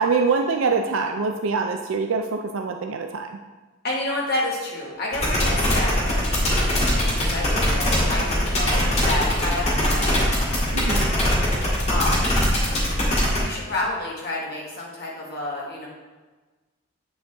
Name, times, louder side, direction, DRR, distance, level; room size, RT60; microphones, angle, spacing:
voice 1, 0.0-3.4 10.7-11.1, right 4 dB, 65° right, 4 dB, 0.4 m, -24 dB
voice 2, 3.8-10.3 11.9-12.3 13.4-15.9, left 2 dB, 50° left, -3 dB, 1.8 m, -29 dB
sound 1, 5.1-13.4, left 1 dB, 30° left, 1.9 m, -21 dB
8.0 x 6.3 x 3.5 m, 1.3 s
head